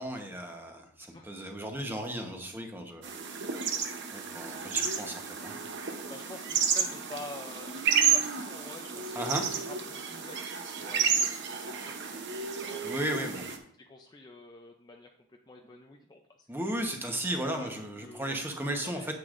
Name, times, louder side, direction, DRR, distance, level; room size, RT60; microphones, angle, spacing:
voice 1, 0.0-3.1 4.1-5.5 9.1-9.4 12.8-13.4 16.5-19.1, right 1 dB, 10° right, 3 dB, 1.0 m, -35 dB
sound 1, 3.0-13.6, right 7 dB, 55° right, 0.8 m, -31 dB
voice 2, 6.0-11.3 11.6-15.1 15.5-16.5 17.6-18.5 18.8-19.1, left 2 dB, 20° left, 3 dB, 0.4 m, -48 dB
9.5 x 8.1 x 2.6 m, 0.65 s
head